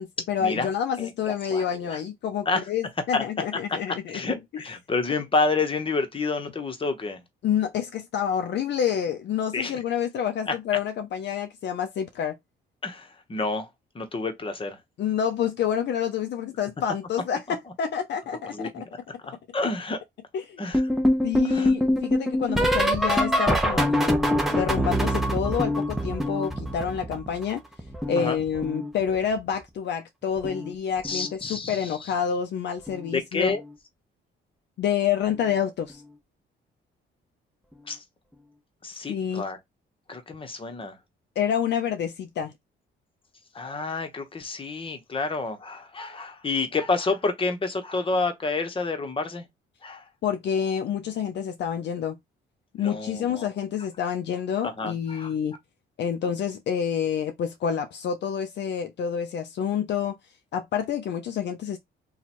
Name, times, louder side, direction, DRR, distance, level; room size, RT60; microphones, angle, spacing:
voice 1, 0.0-4.2 7.4-12.4 15.0-18.7 20.3-20.6 21.2-24.2 24.5-27.6 28.1-33.6 34.8-36.0 39.1-39.5 41.4-42.5 50.2-52.2 52.7-55.6 56.0-60.2 60.5-61.8, left 8 dB, 60° left, 0.5 m, -28 dB
voice 2, 1.0-2.0 2.5-2.6 3.1-3.2 3.9-7.2 9.5-9.8 10.5-10.6 12.8-13.7 13.9-14.8 18.5-18.7 19.2-20.0 20.6-20.8 21.4-21.8 23.7-23.9 28.2-28.4 31.0-32.1 33.1-33.6 37.9-38.0 38.8-39.6 40.1-41.0 43.5-49.4 49.8-50.0 52.8-53.5 54.6-55.3, left 3 dB, 25° left, 0.9 m, -29 dB
sound 1, 20.7-27.5 27.8-29.4 30.4-30.7 31.0-31.3 32.9-33.1 33.5-33.7 35.3-35.4, equal, ahead, 0.7 m, -25 dB
2.9 x 2.3 x 4.2 m
cardioid pair, 90°, 20 cm